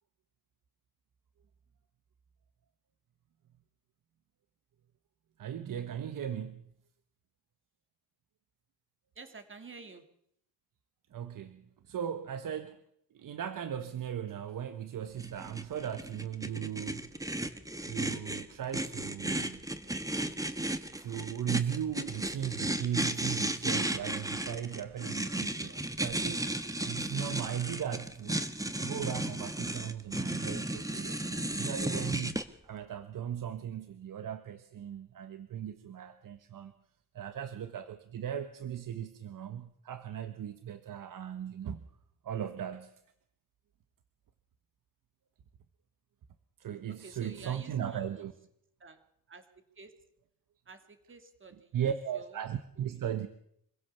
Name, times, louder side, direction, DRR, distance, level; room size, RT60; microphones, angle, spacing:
voice 1, 5.4-6.7 11.1-12.8 13.1-17.1 17.9-19.6 21.0-26.5 26.8-28.4 28.8-31.2 31.5-32.4 32.6-36.7 37.1-41.8 42.2-42.9 46.6-48.3 51.7-53.3, right 9 dB, 70° right, 10 dB, 1.4 m, -37 dB
voice 2, 9.1-10.0 46.9-48.3 48.8-49.0 49.3-49.5 49.7-49.9 50.6-52.5 52.8-52.9, right 4 dB, 35° right, 7 dB, 3.1 m, -50 dB
sound 1, 15.2-32.4, right 1 dB, 10° right, 1.5 m, -34 dB
25.5 x 16.0 x 7.1 m, 0.71 s
cardioid pair, 105°, 34 cm